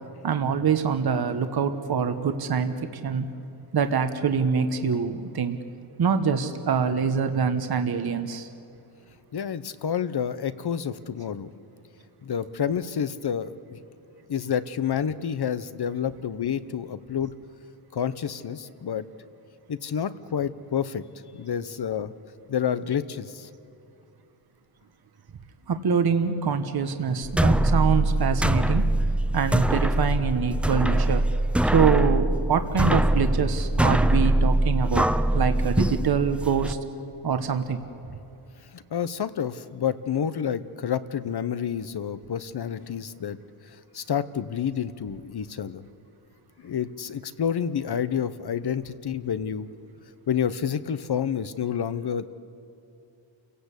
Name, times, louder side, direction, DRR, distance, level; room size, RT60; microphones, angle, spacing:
voice 1, 0.2-3.3 3.7-5.6 6.0-8.5 25.7-28.9 29.3-31.2 31.6-35.1 35.3-36.8 37.2-37.8, right 6 dB, 50° right, 8 dB, 1.1 m, -25 dB
voice 2, 9.3-11.5 12.2-13.8 14.3-17.3 17.9-19.1 19.7-21.0 21.3-22.1 22.5-23.5 38.7-43.4 43.9-45.8 46.6-49.7 50.3-52.3, left 8 dB, 50° left, 14 dB, 0.9 m, -29 dB
sound 1, 27.2-36.7, right 1 dB, 5° right, 0.5 m, -23 dB
29.0 x 17.0 x 8.2 m, 2.8 s
wide cardioid pair, 125°, 49 cm